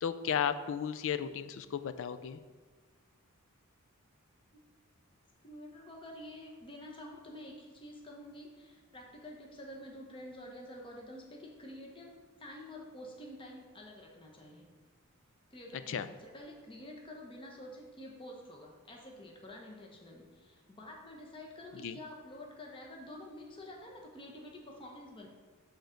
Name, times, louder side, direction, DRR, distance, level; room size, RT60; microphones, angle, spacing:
voice 1, 0.0-2.4 15.9-16.1 21.8-22.0, left 8 dB, 65° left, 12 dB, 0.4 m, -34 dB
voice 2, 5.4-14.7 15.5-25.3, left 1 dB, 25° left, 0 dB, 0.9 m, -49 dB
6.9 x 3.9 x 6.3 m, 1.4 s
head